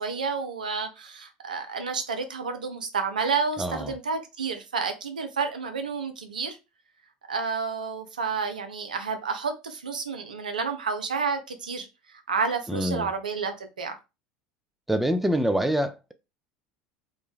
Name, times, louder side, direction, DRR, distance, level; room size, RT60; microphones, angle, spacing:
voice 1, 0.0-6.6 7.3-14.0, right 5 dB, 85° right, 0.5 m, -30 dB
voice 2, 3.6-3.9 12.7-13.1 14.9-16.1, equal, 5° right, 0.4 m, -25 dB
2.6 x 2.2 x 3.4 m
hypercardioid pair, 75°, 4 cm